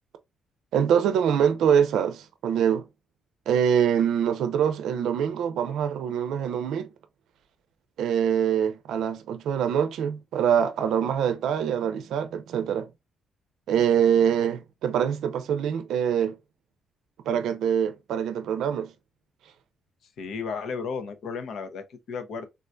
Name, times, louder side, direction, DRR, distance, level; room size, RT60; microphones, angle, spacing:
voice 1, 0.7-2.9 3.5-6.9 8.0-12.9 13.7-16.4 17.3-18.9, right 8 dB, 85° right, 0.5 m, -24 dB
voice 2, 20.2-22.5, left 5 dB, 65° left, 0.6 m, -34 dB
3.7 x 2.2 x 2.4 m
cardioid pair, 140°, 0 cm